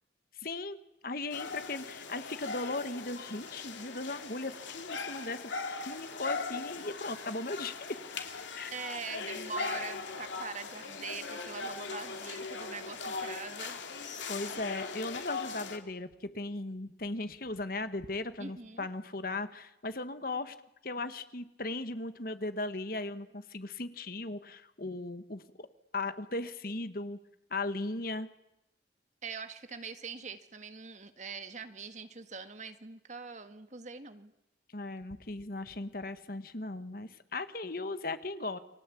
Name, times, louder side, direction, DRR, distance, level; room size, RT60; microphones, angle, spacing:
voice 1, 0.4-0.8 1.0-5.5 5.8-8.0 8.6-8.8 14.3-20.5 20.8-25.7 25.9-27.2 27.5-28.3 34.7-38.6, left 2 dB, 50° left, 11 dB, 1.5 m, -37 dB
sound 1, 1.3-15.8, left 4 dB, 90° left, 3.1 m, -40 dB
voice 2, 8.7-13.8 18.4-18.9 29.2-34.3, right 5 dB, 40° right, 9 dB, 1.7 m, -43 dB
29.5 x 23.0 x 8.5 m, 0.89 s
head